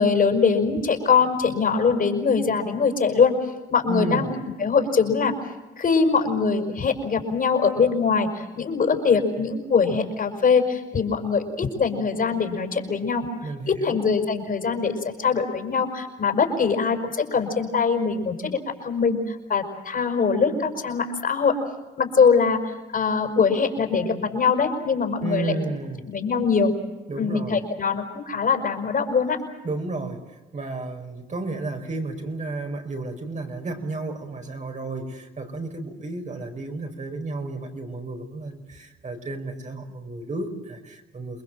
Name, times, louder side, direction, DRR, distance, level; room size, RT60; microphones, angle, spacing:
voice 1, 0.0-3.3 3.7-5.3 5.8-13.3 13.7-21.5 22.0-25.5 26.1-26.7 27.2-29.4, left 5 dB, 45° left, 5 dB, 5.7 m, -22 dB
voice 2, 3.9-4.3 13.4-14.0 25.2-26.1 27.1-27.6 29.6-30.2 30.5-41.4, right 3 dB, 40° right, 3 dB, 5.5 m, -32 dB
29.0 x 21.0 x 7.7 m, 1.1 s
cardioid pair, 90°, 20 cm